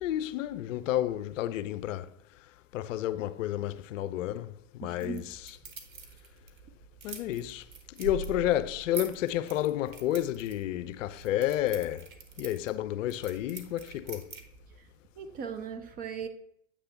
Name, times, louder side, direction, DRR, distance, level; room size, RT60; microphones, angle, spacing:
voice 1, 0.0-2.1 2.7-5.6 7.0-7.6 8.0-12.1 12.4-14.3, left 13 dB, 65° left, 0.6 m, -31 dB
voice 2, 4.8-5.2 14.8-14.9 15.2-16.3, right 6 dB, 20° right, 0.5 m, -38 dB
sound 1, 5.0-14.8, right 4 dB, 80° right, 1.4 m, -45 dB
8.4 x 3.4 x 5.8 m
hypercardioid pair, 115°, 41 cm